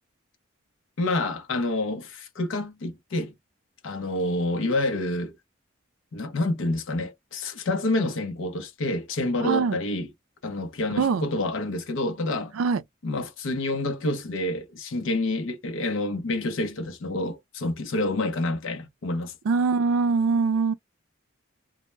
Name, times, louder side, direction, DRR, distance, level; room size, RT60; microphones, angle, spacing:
voice 1, 1.0-3.4 3.8-5.3 6.1-10.1 10.4-12.6 13.0-19.3, left 2 dB, 70° left, 0.5 m, -28 dB
voice 2, 9.4-9.8 11.0-11.2 12.5-12.8 19.4-20.7, right 5 dB, 85° right, 0.4 m, -23 dB
2.1 x 2.0 x 3.1 m
head